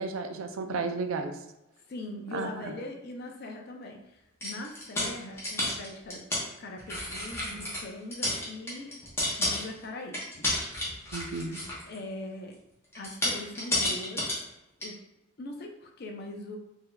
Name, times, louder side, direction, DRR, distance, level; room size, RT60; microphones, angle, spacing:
voice 1, 0.0-1.3 2.3-2.7 11.1-11.6, right 4 dB, 80° right, 6 dB, 0.4 m, -33 dB
voice 2, 1.9-6.2 6.6-8.9 9.4-10.5 11.9-12.5 13.0-14.3 14.8-15.0 15.4-16.6, left 2 dB, 50° left, 2 dB, 0.4 m, -41 dB
sound 1, 4.4-6.4 6.8-7.8 8.1-9.8 10.1-12.0 12.9-14.4 14.8-14.9, left 1 dB, 10° left, 0.7 m, -31 dB
3.7 x 2.6 x 2.2 m, 0.91 s
head